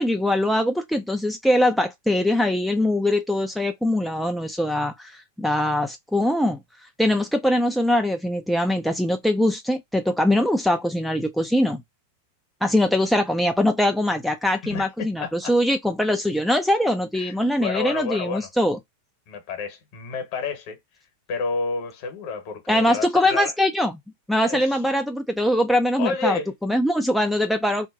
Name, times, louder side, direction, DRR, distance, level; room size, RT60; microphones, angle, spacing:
voice 1, 0.0-6.6 7.0-11.8 12.6-18.8 22.7-24.0 24.3-27.9, left 1 dB, ahead, 0.3 m, -22 dB
voice 2, 14.6-15.5 17.1-18.5 19.3-20.8 21.3-23.5 24.5-24.8 26.0-26.5, left 4 dB, 45° left, 1.0 m, -30 dB
2.7 x 2.1 x 2.4 m
figure-of-eight pair, 90°, 0 cm